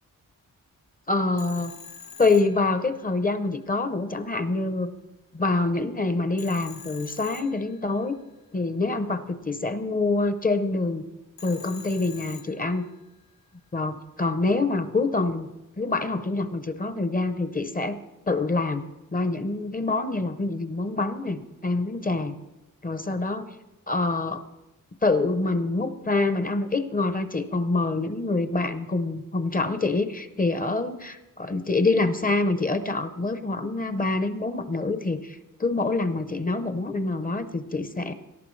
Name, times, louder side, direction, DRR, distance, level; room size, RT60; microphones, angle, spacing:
voice 1, 1.1-1.7 2.2-4.9 5.3-8.2 8.5-11.0 11.4-12.9 13.7-15.5 15.8-18.0 18.3-18.8 19.1-22.3 22.8-23.5 23.9-24.4 25.0-38.1, left 3 dB, 25° left, 10 dB, 0.6 m, -26 dB
Telephone, 1.4-3.3 6.4-8.2 11.4-13.0, left 7 dB, 80° left, 1.0 m, -45 dB
17.5 x 13.5 x 3.2 m, 1.0 s
wide cardioid pair, 130°, 33 cm